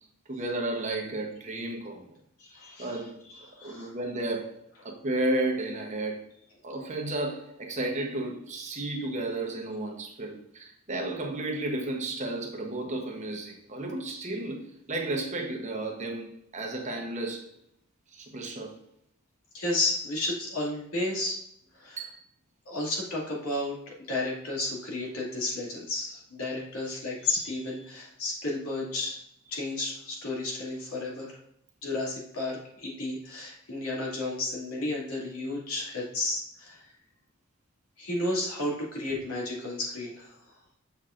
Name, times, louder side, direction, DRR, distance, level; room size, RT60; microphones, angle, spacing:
voice 1, 0.3-2.1 2.8-3.2 3.6-6.2 6.6-17.5 18.1-18.8 22.0-22.1, right 2 dB, 35° right, 1.0 m, -33 dB
voice 2, 2.4-3.0 3.6-3.9 19.5-21.4 21.7-22.0 22.7-29.2 29.5-31.4 31.8-36.9 38.0-40.4, left 2 dB, 80° left, 2.4 m, -32 dB
7.1 x 6.0 x 2.5 m
head